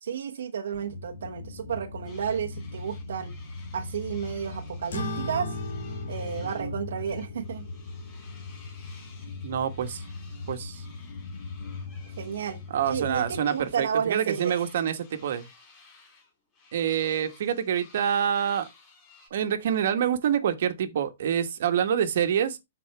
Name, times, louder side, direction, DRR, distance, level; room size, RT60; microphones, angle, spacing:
voice 1, 0.0-3.3 3.7-5.6 6.1-7.7 12.2-12.6 12.9-14.5, right 7 dB, 75° right, 1.0 m, -32 dB
sound 1, 0.7-13.4, left 3 dB, 35° left, 2.0 m, -39 dB
sound 2, 2.0-6.7 7.0-12.7 13.2-19.3, left 4 dB, 10° left, 4.9 m, -55 dB
sound 3, 4.9-9.8, left 1 dB, 70° left, 2.6 m, -39 dB
voice 2, 9.4-10.0 10.5-10.8 12.7-15.5 16.7-18.7 19.3-22.6, right 8 dB, 55° right, 1.3 m, -26 dB
12.5 x 4.2 x 3.4 m
hypercardioid pair, 165°, 0 cm